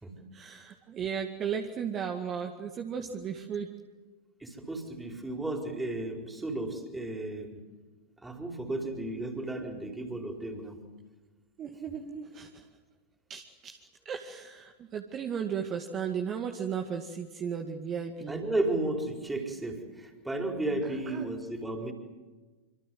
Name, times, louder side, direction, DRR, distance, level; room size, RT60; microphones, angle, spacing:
voice 1, 0.3-3.8 11.6-12.7 13.3-18.4 20.8-21.3, right 7 dB, 30° right, 4 dB, 2.2 m, -35 dB
voice 2, 4.4-7.6 8.2-10.8 18.3-21.9, right 2 dB, 5° right, 3 dB, 4.6 m, -33 dB
27.0 x 26.0 x 7.9 m, 1.3 s
figure-of-eight pair, 90°, 0 cm